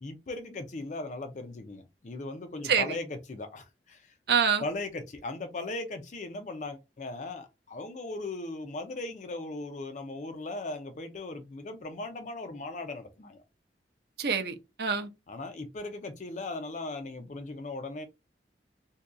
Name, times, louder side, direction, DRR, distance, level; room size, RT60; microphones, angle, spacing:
voice 1, 0.0-4.1 4.6-13.4 15.3-18.1, left 2 dB, 45° left, 0.5 m, -38 dB
voice 2, 4.3-4.6 14.2-15.1, right 6 dB, 60° right, 0.5 m, -26 dB
2.7 x 2.2 x 3.6 m
head